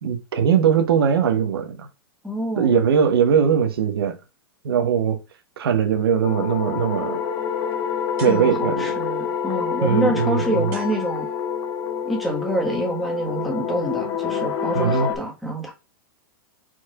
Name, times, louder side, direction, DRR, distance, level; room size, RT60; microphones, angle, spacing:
voice 1, 0.0-1.9 2.6-4.1 4.6-5.2 5.6-7.2 8.2-9.0 9.8-10.7 14.7-15.1, right 7 dB, 85° right, 1.1 m, -20 dB
voice 2, 2.2-2.7 8.3-11.3 12.0-15.7, right 1 dB, ahead, 1.5 m, -26 dB
sound 1, 6.2-15.2, left 7 dB, 40° left, 1.1 m, -27 dB
sound 2, 8.2-9.0 10.7-11.7, right 5 dB, 35° right, 2.4 m, -44 dB
4.7 x 4.4 x 2.4 m
hypercardioid pair, 145°, 12 cm